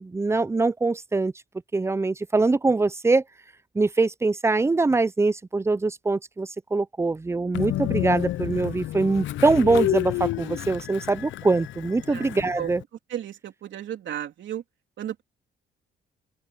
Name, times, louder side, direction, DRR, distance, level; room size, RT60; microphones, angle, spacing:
voice 1, 0.0-1.3 1.7-3.2 3.7-12.8, right 3 dB, 15° right, 0.5 m, -23 dB
Train, 7.5-12.8, left 15 dB, 70° left, 0.5 m, -30 dB
voice 2, 13.1-14.6 15.0-15.2, right 10 dB, 70° right, 3.4 m, -33 dB
open air
cardioid pair, 90°, 20 cm